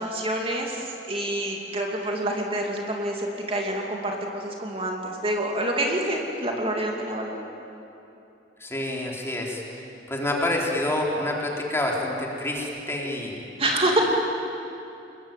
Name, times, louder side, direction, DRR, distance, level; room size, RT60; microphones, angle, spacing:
voice 1, 0.0-7.4 13.6-14.0, right 1 dB, 35° right, 0 dB, 2.7 m, -27 dB
voice 2, 8.6-9.6 10.1-13.4, left 1 dB, 15° left, -2 dB, 4.0 m, -27 dB
28.0 x 22.0 x 9.3 m, 2.9 s
head